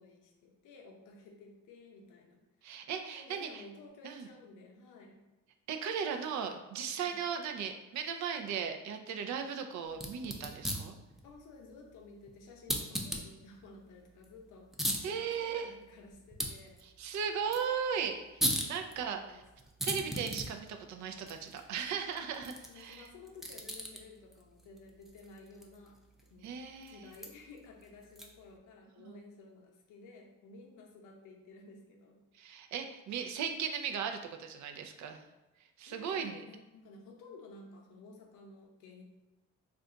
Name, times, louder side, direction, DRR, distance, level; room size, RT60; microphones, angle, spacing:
voice 1, 0.0-2.7 3.1-5.3 7.0-7.2 11.2-16.8 18.9-19.4 22.7-26.0 26.3-26.5 26.9-32.3 35.9-39.0, left 3 dB, 90° left, 1 dB, 0.7 m, -54 dB
voice 2, 2.6-3.6 4.0-4.3 5.7-10.9 15.0-15.7 17.0-19.4 19.8-23.1 26.4-27.1 29.0-29.2 32.3-35.3 35.8-36.4, right 7 dB, 65° right, 6 dB, 0.5 m, -37 dB
sound 1, 9.9-28.6, equal, ahead, 0.4 m, -41 dB
2.4 x 2.2 x 3.8 m, 1.0 s
cardioid pair, 90°, 30 cm